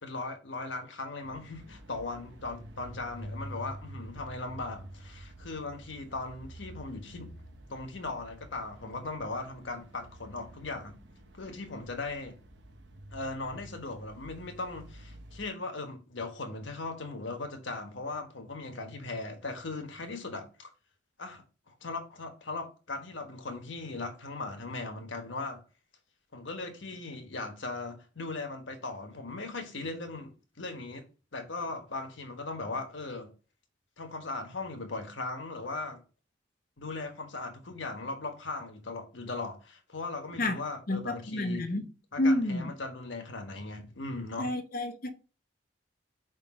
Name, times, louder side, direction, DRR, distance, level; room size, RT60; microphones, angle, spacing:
voice 1, 0.0-7.3 7.7-11.0 11.3-12.4 13.1-20.7 21.2-25.6 26.3-31.0 31.3-33.3 34.0-36.0 36.8-41.7 42.1-44.5, left 3 dB, 75° left, 1.3 m, -38 dB
sound 1, 1.2-15.5, right 1 dB, 65° right, 0.9 m, -48 dB
voice 2, 40.9-41.9 42.2-42.7 44.4-45.1, left 1 dB, 45° left, 0.8 m, -29 dB
5.1 x 3.9 x 5.0 m
head